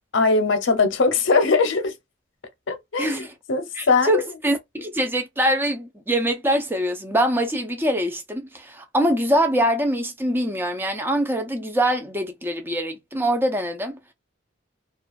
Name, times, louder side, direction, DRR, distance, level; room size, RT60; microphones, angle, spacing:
voice 1, 0.1-1.9 2.7-3.2 3.5-4.2, left 4 dB, 80° left, 0.7 m, -20 dB
voice 2, 3.0-3.3 3.7-14.0, right 1 dB, 10° right, 0.5 m, -24 dB
2.4 x 2.3 x 2.3 m
head